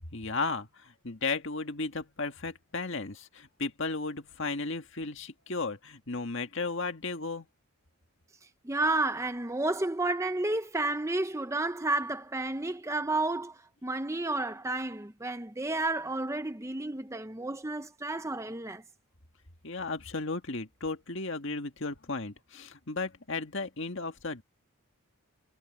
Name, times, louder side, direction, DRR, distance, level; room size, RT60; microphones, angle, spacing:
voice 1, 0.1-7.5 19.6-24.4, left 3 dB, 55° left, 1.9 m, -35 dB
voice 2, 8.6-18.8, right 2 dB, 15° right, 0.7 m, -31 dB
head